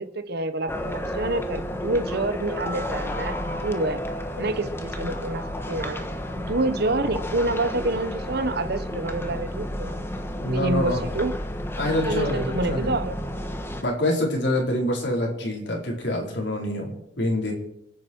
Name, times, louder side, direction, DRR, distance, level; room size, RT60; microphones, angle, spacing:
voice 1, 0.0-4.0 4.4-6.0 6.3-10.0 10.5-11.3 12.0-13.2, right 2 dB, 60° right, 1.1 m, -27 dB
sound 1, 0.7-13.8, equal, 15° left, 1.2 m, -32 dB
voice 2, 10.3-11.0 11.8-12.9 13.8-17.5, left 1 dB, 65° left, 4.5 m, -26 dB
28.0 x 9.5 x 4.6 m
head